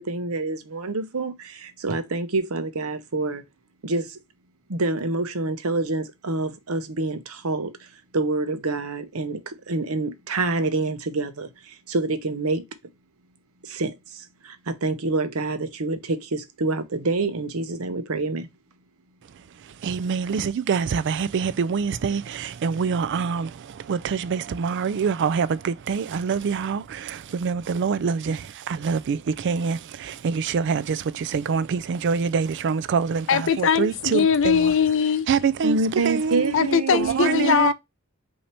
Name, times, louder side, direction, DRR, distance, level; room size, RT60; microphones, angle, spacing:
voice 1, 0.0-3.4 3.8-4.2 4.7-12.6 13.6-18.5 35.6-37.6, right 3 dB, 80° right, 0.8 m, -27 dB
voice 2, 19.2-34.7 35.3-36.6 36.9-37.7, right 6 dB, 55° right, 0.4 m, -25 dB
voice 3, 33.3-35.3 36.5-37.7, left 6 dB, 65° left, 0.5 m, -20 dB
5.5 x 2.8 x 3.3 m
head